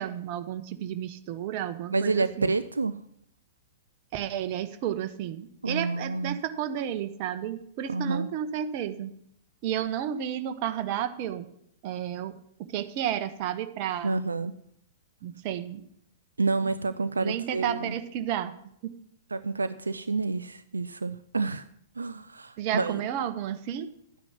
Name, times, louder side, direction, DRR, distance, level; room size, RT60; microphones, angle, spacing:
voice 1, 0.0-2.5 4.1-9.1 9.6-11.5 11.8-12.4 12.7-14.2 15.2-15.8 16.6-16.7 17.1-18.5 18.8-18.9 22.6-23.9, right 10 dB, 40° right, 9 dB, 1.1 m, -32 dB
voice 2, 1.9-3.0 5.6-6.4 7.9-8.3 14.0-14.5 16.4-18.0 19.3-21.6 22.0-23.0, right 3 dB, 75° right, 12 dB, 0.4 m, -29 dB
12.5 x 9.6 x 5.9 m, 0.72 s
figure-of-eight pair, 105°, 0 cm